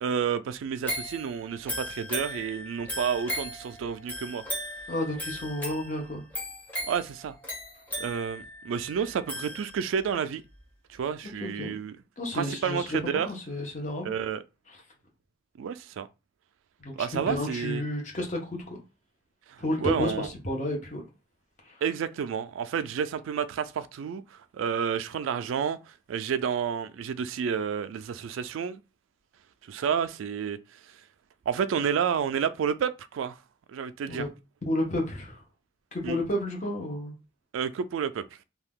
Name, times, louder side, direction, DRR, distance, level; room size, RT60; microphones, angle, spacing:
voice 1, 0.0-4.4 6.8-7.4 8.0-10.4 10.9-12.0 12.3-13.3 14.0-14.4 15.6-16.1 17.0-17.8 19.5-20.3 21.8-25.8 26.1-28.8 29.7-30.6 31.5-33.4 33.7-34.2 36.0-36.2 37.5-38.2, right 7 dB, 85° right, 0.3 m, -30 dB
sound 1, 0.8-10.1 10.6-10.7, equal, 10° left, 0.8 m, -37 dB
voice 2, 4.9-6.2 11.4-11.8 12.2-14.1 14.7-14.8 16.8-18.8 19.6-21.0 21.6-21.8 34.1-34.3 34.6-35.4 35.9-37.1, left 1 dB, 35° left, 0.9 m, -31 dB
2.7 x 2.3 x 3.5 m
head